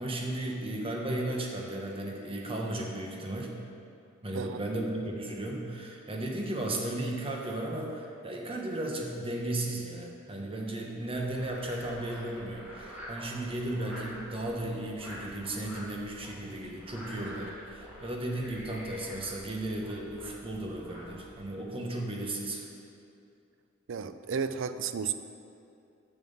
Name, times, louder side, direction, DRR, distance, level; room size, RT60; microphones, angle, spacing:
voice 1, 0.0-3.6 4.2-22.7, right 1 dB, 25° right, 0 dB, 1.1 m, -35 dB
Frog, 11.1-21.4, equal, 10° right, 1.9 m, -47 dB
voice 2, 23.9-25.1, right 6 dB, 65° right, 11 dB, 0.4 m, -33 dB
7.3 x 6.1 x 7.1 m, 2.5 s
head